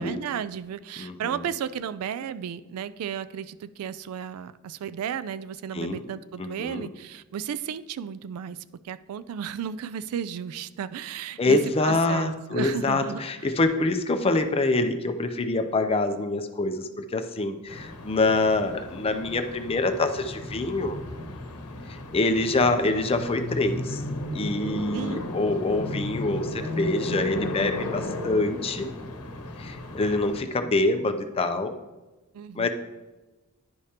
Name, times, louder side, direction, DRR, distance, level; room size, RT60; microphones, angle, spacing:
voice 1, 0.0-13.5 24.9-25.2 32.3-32.7, right 8 dB, 75° right, 15 dB, 0.3 m, -34 dB
voice 2, 1.0-1.4 5.7-6.0 6.4-6.9 11.4-21.0 21.9-24.0 24.3-28.9 29.6-31.7 32.6-32.7, left 2 dB, 25° left, 7 dB, 0.5 m, -25 dB
sound 1, 17.7-30.4, left 2 dB, 85° left, 0.9 m, -34 dB
10.5 x 4.9 x 2.8 m, 1.1 s
head